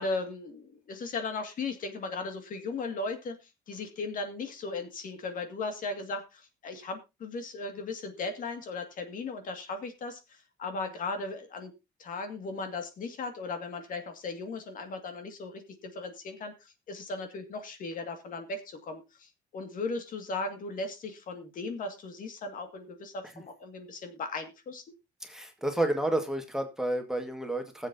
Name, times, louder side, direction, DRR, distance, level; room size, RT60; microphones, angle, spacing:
voice 1, 0.0-3.4 3.7-11.7 12.0-24.8, left 3 dB, 55° left, 7 dB, 2.2 m, -37 dB
voice 2, 25.2-27.9, right 1 dB, 5° right, 4 dB, 1.9 m, -30 dB
20.5 x 7.6 x 2.8 m, 0.25 s
cardioid pair, 110°, 17 cm